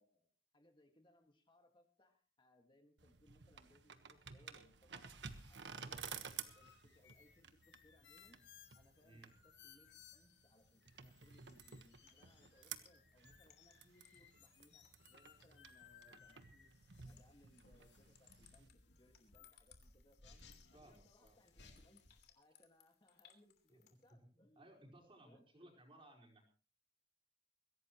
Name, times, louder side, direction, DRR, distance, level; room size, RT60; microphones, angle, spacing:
voice 1, 0.0-5.1 5.5-8.4 8.7-16.7 17.0-18.7 19.0-20.4 20.7-22.0 22.3-25.8, left 1 dB, 25° left, 4 dB, 1.9 m, -71 dB
sound 1, 3.0-18.7, right 7 dB, 85° right, 1.4 m, -54 dB
sound 2, 5.2-22.3, left 6 dB, 90° left, 2.7 m, -65 dB
sound 3, 5.5-24.1, left 10 dB, 65° left, 2.9 m, -74 dB
voice 2, 9.0-9.3 20.7-21.4 23.7-23.8 24.3-26.4, right 1 dB, 30° right, 0 dB, 4.9 m, -62 dB
22.5 x 16.5 x 3.1 m, 0.36 s
head